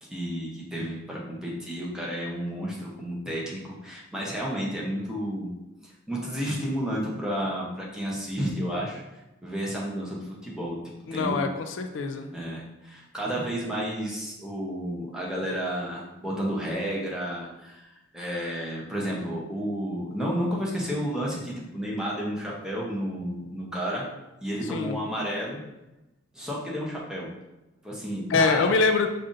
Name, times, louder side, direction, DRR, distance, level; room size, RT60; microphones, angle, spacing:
voice 1, 0.0-5.5 5.8-9.0 9.4-10.8 11.1-11.4 12.3-24.1 24.4-25.6 26.3-27.3 27.8-28.7, equal, 5° right, -4 dB, 0.7 m, -31 dB
voice 2, 11.1-12.3 24.7-25.0 28.3-29.1, left 4 dB, 80° left, 6 dB, 0.4 m, -24 dB
5.4 x 2.5 x 2.5 m, 0.96 s
head